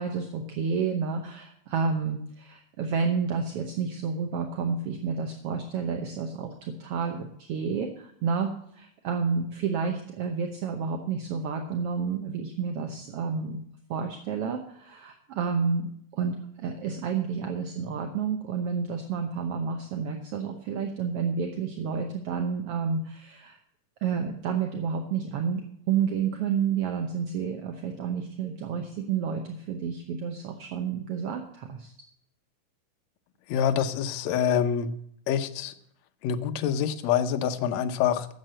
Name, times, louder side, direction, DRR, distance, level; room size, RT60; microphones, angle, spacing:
voice 1, 0.0-13.6 13.9-23.6 24.0-31.9, right 6 dB, 65° right, 4 dB, 1.5 m, -30 dB
voice 2, 33.5-34.9 35.3-35.7 36.2-38.3, left 8 dB, 70° left, 8 dB, 1.7 m, -26 dB
10.5 x 7.4 x 7.7 m, 0.70 s
omnidirectional pair, 3.7 m